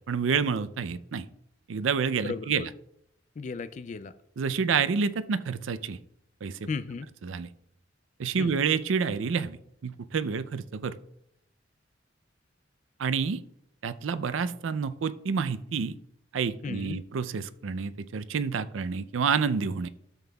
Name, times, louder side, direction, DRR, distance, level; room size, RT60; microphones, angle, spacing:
voice 1, 0.1-1.3 1.7-2.7 4.4-6.0 6.4-6.7 7.2-7.5 8.2-9.6 9.8-11.0 13.0-13.4 13.8-16.0 16.3-19.9, right 6 dB, 85° right, 13 dB, 0.4 m, -28 dB
voice 2, 2.2-2.7 3.4-4.1 6.7-7.1 8.4-8.5 16.6-17.0, left 4 dB, 40° left, 12 dB, 0.3 m, -35 dB
13.0 x 7.1 x 2.3 m, 0.74 s
head